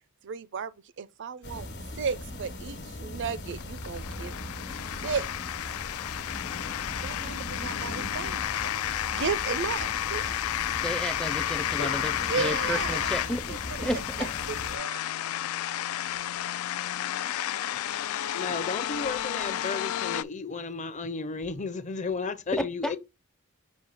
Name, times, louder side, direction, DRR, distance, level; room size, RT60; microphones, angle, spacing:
voice 1, 0.2-0.7 1.0-1.7 2.0-4.6 5.0-5.3 7.0-8.8 9.1-10.4 12.3-13.1 13.5-14.3 14.7-15.0, right 6 dB, 55° right, 0.5 m, -34 dB
sound 1, 1.4-14.8, left 1 dB, 50° left, 1.2 m, -39 dB
sound 2, 3.2-20.2, left 12 dB, 70° left, 0.3 m, -32 dB
voice 2, 10.8-14.2 22.6-22.9, equal, 5° left, 0.4 m, -32 dB
voice 3, 18.3-23.0, left 4 dB, 35° left, 0.7 m, -33 dB
6.3 x 2.7 x 5.6 m
head